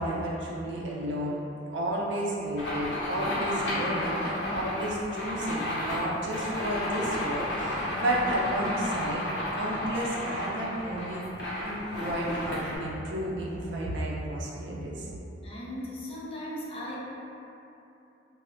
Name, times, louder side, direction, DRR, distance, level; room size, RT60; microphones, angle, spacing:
voice 1, 0.0-1.4 1.7-9.2 9.5-11.4 11.6-15.0, right 1 dB, 85° right, -4 dB, 0.5 m, -32 dB
sound 1, 2.6-12.8, left 1 dB, 85° left, 0.6 m, -32 dB
voice 2, 15.4-17.0, left 1 dB, 35° left, -5 dB, 0.4 m, -37 dB
2.1 x 2.0 x 3.6 m, 2.8 s
head